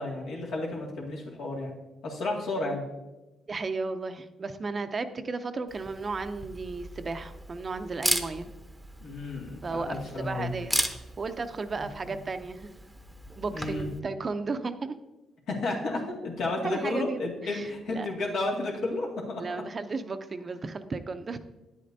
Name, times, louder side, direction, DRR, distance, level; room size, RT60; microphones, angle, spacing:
voice 1, 0.0-1.7 2.0-2.8 9.0-10.5 11.8-12.2 13.5-13.9 15.5-19.6, left 2 dB, 75° left, -3 dB, 2.1 m, -32 dB
voice 2, 3.5-8.5 9.6-10.7 11.2-12.7 13.4-15.0 16.6-18.1 19.4-21.4, right 4 dB, 35° right, 10 dB, 0.5 m, -34 dB
Camera, 5.7-14.0, right 1 dB, 5° right, 0.8 m, -36 dB
10.0 x 8.5 x 2.7 m, 1.1 s
cardioid pair, 90°, 0 cm